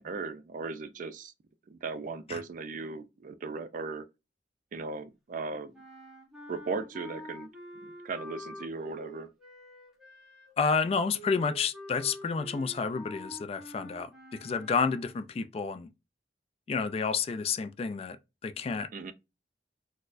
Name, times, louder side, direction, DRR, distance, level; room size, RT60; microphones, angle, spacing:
voice 1, 0.0-1.3 1.7-4.1 4.7-5.7 6.5-7.5 7.8-9.3 18.9-19.1, right 4 dB, 50° right, 0.4 m, -37 dB
sound 1, 5.7-15.3, equal, 5° right, 1.0 m, -47 dB
voice 2, 10.6-15.9 16.7-18.2 18.4-18.9, left 5 dB, 35° left, 0.3 m, -30 dB
4.2 x 2.1 x 2.5 m
head